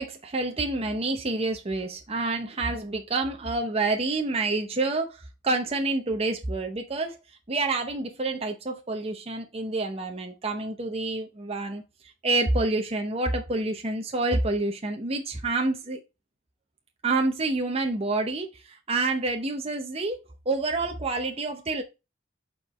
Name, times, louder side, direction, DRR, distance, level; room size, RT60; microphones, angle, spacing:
voice 1, 0.0-7.2 7.5-11.8 12.2-16.0 17.0-21.8, right 2 dB, 30° right, 0.8 m, -28 dB
7.6 x 4.6 x 3.1 m
head